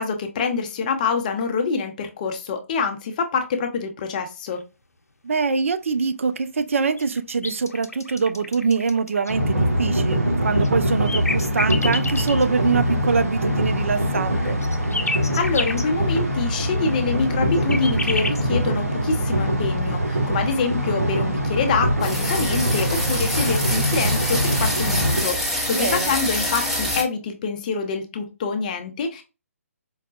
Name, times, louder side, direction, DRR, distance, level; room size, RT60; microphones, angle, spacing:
voice 1, 0.0-4.6 15.3-29.2, left 5 dB, 30° left, 0.6 m, -26 dB
voice 2, 5.2-14.6 25.7-26.1, right 5 dB, 60° right, 0.4 m, -24 dB
sound 1, 7.0-9.3 10.6-12.4 14.0-15.8 17.4-18.4, left 3 dB, 80° left, 0.5 m, -29 dB
sound 2, 9.3-25.2, equal, 80° right, 0.9 m, -23 dB
sound 3, 22.0-27.0, left 1 dB, 5° right, 0.7 m, -26 dB
4.6 x 2.2 x 2.3 m
figure-of-eight pair, 140°, 8 cm